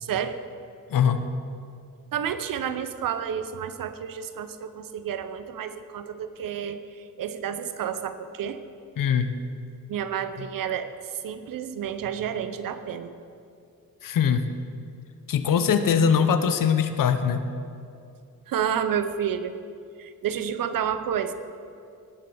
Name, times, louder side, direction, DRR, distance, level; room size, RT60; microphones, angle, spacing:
voice 1, 0.0-0.4 2.1-6.8 7.2-8.6 9.9-10.9 11.2-13.1 18.5-19.5 20.0-21.3, right 8 dB, 85° right, 11 dB, 0.8 m, -30 dB
voice 2, 0.9-1.2 9.0-9.3 10.4-10.5 14.0-14.4 15.3-17.4, left 7 dB, 75° left, 10 dB, 0.9 m, -22 dB
17.5 x 7.6 x 5.5 m, 2.4 s
cardioid pair, 90°, 33 cm